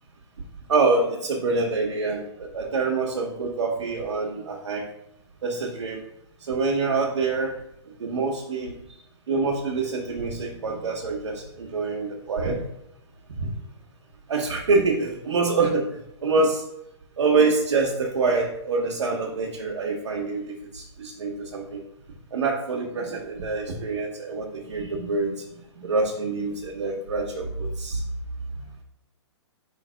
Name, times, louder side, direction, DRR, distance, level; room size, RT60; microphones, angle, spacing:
voice 1, 0.7-4.9 5.4-6.0 6.5-7.6 8.0-8.7 9.3-12.6 13.4-13.5 14.3-15.9 16.2-16.7 17.2-21.8 22.3-25.4 25.8-28.0, right 3 dB, 75° right, -2 dB, 1.3 m, -25 dB
5.4 x 3.8 x 5.1 m, 0.77 s
hypercardioid pair, 160°, 15 cm